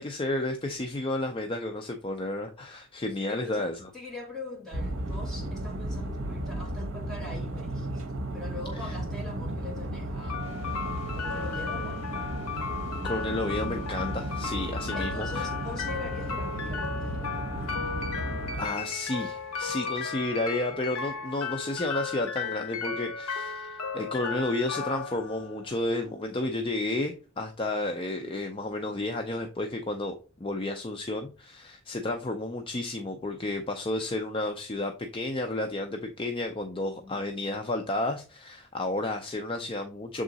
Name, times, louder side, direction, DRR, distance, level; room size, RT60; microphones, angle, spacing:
voice 1, 0.0-3.9 8.8-8.9 13.0-15.5 18.6-30.1 30.4-40.2, left 2 dB, 25° left, 0.5 m, -32 dB
voice 2, 3.3-8.0 8.3-10.5 11.1-12.0 14.9-17.4 36.8-37.2, left 2 dB, ahead, 2.0 m, -42 dB
sound 1, 4.7-18.7, right 1 dB, 65° right, 0.9 m, -34 dB
sound 2, 10.3-26.3, left 5 dB, 90° left, 0.7 m, -35 dB
sound 3, 10.4-27.4, equal, 30° right, 2.0 m, -54 dB
7.1 x 3.7 x 3.9 m
head